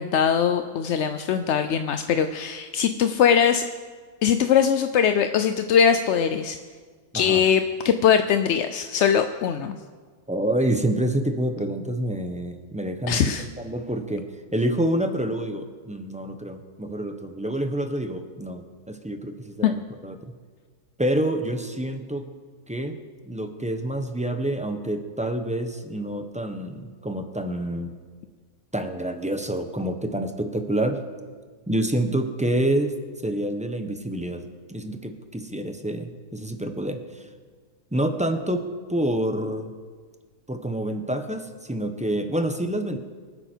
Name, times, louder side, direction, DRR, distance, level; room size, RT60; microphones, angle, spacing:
voice 1, 0.0-3.6 4.2-6.6 7.1-9.8 13.1-13.5 19.6-19.7, left 8 dB, 65° left, 8 dB, 0.7 m, -21 dB
voice 2, 10.3-14.2 14.5-20.2 21.0-22.3 22.7-22.9 23.2-27.9 28.7-31.0 31.7-32.9 33.2-34.4 34.7-37.3 37.9-39.7 40.5-43.0, right 1 dB, 5° right, 6 dB, 0.7 m, -27 dB
24.0 x 9.7 x 4.5 m, 1.5 s
omnidirectional pair, 1.7 m